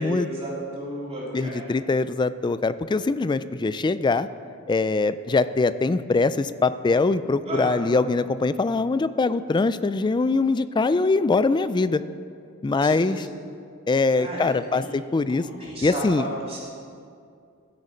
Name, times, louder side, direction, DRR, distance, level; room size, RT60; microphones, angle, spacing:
voice 1, 0.0-1.7 7.5-7.7 12.7-13.3 14.1-14.9 15.3-16.6, right 1 dB, 30° right, -6 dB, 3.7 m, -33 dB
voice 2, 1.3-4.3 4.7-12.0 12.6-13.3 13.9-15.5 15.8-16.2, left 3 dB, 20° left, 14 dB, 0.3 m, -22 dB
16.0 x 8.2 x 5.1 m, 2.4 s
head